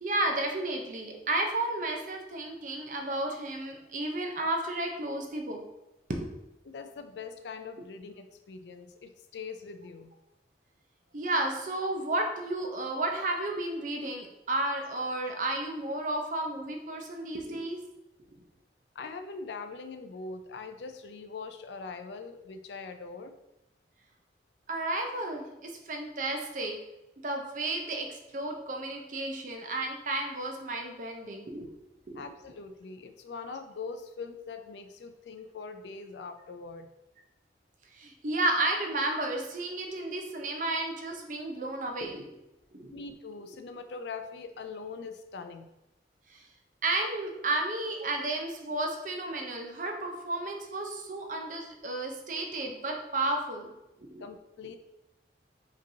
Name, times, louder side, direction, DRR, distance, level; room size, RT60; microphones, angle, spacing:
voice 1, 0.0-5.6 6.2-6.3 11.1-17.8 24.7-26.7 27.2-31.7 32.1-32.3 37.9-42.3 42.7-42.9 46.3-46.4 46.8-53.7 54.0-54.2, right 2 dB, 45° right, 2 dB, 0.6 m, -32 dB
voice 2, 6.6-10.1 19.0-23.4 32.1-36.9 42.9-45.7 54.2-54.8, left 4 dB, 75° left, 8 dB, 0.4 m, -42 dB
5.0 x 3.0 x 2.7 m, 0.93 s
head